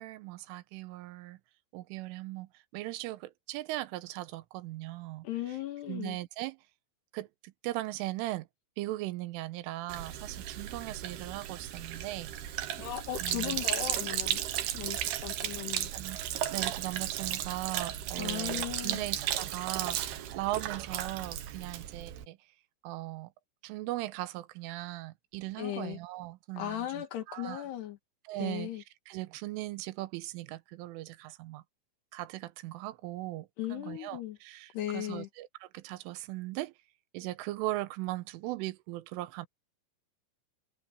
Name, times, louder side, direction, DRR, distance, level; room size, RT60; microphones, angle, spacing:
voice 1, 0.0-1.4 1.7-5.6 5.9-6.6 7.1-8.5 8.8-12.3 12.6-12.9 13.2-13.6 15.9-16.2 16.5-22.4 22.8-23.3 23.6-27.6 28.2-31.6 32.1-36.7 37.1-39.5, right 17 dB, 90° right, 3.3 m, -39 dB
voice 2, 5.2-6.2 12.8-14.4 14.7-15.9 18.2-19.0 25.6-26.0 26.6-28.0 28.4-28.8 33.6-34.4 34.7-35.3, left 12 dB, 65° left, 3.3 m, -37 dB
Sink (filling or washing), 9.9-22.2, right 11 dB, 65° right, 2.9 m, -35 dB
omnidirectional pair, 5.7 m